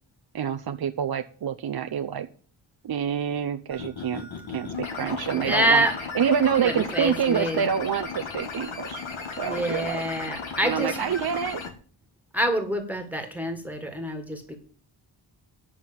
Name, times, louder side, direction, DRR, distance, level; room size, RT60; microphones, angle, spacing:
voice 1, 0.3-2.3 2.8-5.9 6.1-9.0 9.4-10.0 10.6-11.6, right 8 dB, 55° right, 6 dB, 0.6 m, -27 dB
sound 1, 3.7-11.7, left 5 dB, 80° left, 2.3 m, -35 dB
voice 2, 5.3-5.9 6.6-7.6 9.4-11.1 12.3-14.6, right 1 dB, 5° right, 5 dB, 1.7 m, -26 dB
10.0 x 6.1 x 8.7 m, 0.44 s
wide cardioid pair, 170°, 46 cm